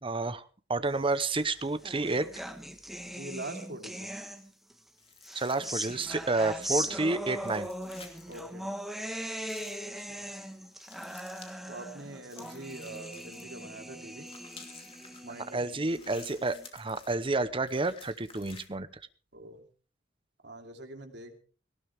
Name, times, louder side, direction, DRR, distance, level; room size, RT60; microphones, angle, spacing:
voice 1, 0.0-2.3 5.3-7.7 15.5-18.9, right 3 dB, 30° right, 13 dB, 0.9 m, -30 dB
sound 1, 1.3-4.7 5.2-16.7, equal, ahead, 1.4 m, -40 dB
voice 2, 3.1-4.1 8.3-8.7 10.0-10.3 11.7-14.3 15.2-15.8 19.3-19.6 20.4-21.4, right 2 dB, 65° right, 4 dB, 2.9 m, -44 dB
sound 2, 5.0-6.3 7.4-8.5 9.5-9.9 10.8-11.6 12.3-13.6 14.2-15.2 15.9-17.2 17.7-18.7, left 5 dB, 30° left, 2.8 m, -52 dB
18.0 x 18.0 x 3.5 m, 0.39 s
head